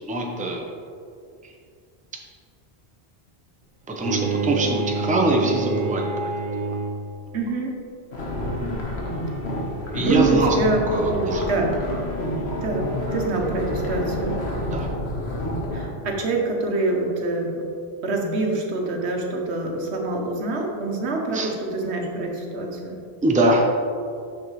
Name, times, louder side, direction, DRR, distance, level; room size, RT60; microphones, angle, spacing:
voice 1, 0.1-0.7 3.9-6.1 9.9-10.6 10.9-11.5 14.7-14.9 21.3-21.5 23.2-23.7, right 2 dB, 10° right, 0 dB, 0.5 m, -23 dB
Bowed string instrument, 4.0-7.2, right 4 dB, 55° right, 0.7 m, -27 dB
voice 2, 7.3-7.7 9.9-10.8 11.1-11.7 12.6-14.3 15.7-17.7 18.0-23.0, right 3 dB, 90° right, 1 dB, 1.2 m, -25 dB
sound 1, 8.1-15.9, left 1 dB, 75° left, 1.3 m, -28 dB
6.5 x 6.4 x 3.1 m, 2.3 s
omnidirectional pair, 1.1 m